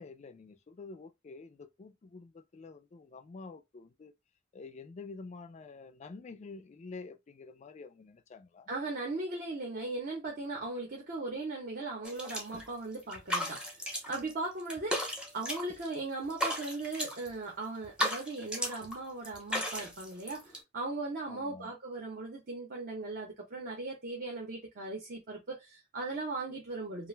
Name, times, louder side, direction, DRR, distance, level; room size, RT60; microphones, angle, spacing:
voice 1, 0.0-4.1 4.5-8.7 21.3-21.7, left 4 dB, 35° left, 0.3 m, -48 dB
voice 2, 8.7-27.1, right 3 dB, 45° right, 0.8 m, -38 dB
sound 1, 12.0-12.7 12.9-14.3 14.6-15.9 16.2-17.3 17.8-19.0 19.2-20.6, equal, 5° right, 0.6 m, -35 dB
2.4 x 2.1 x 3.2 m
head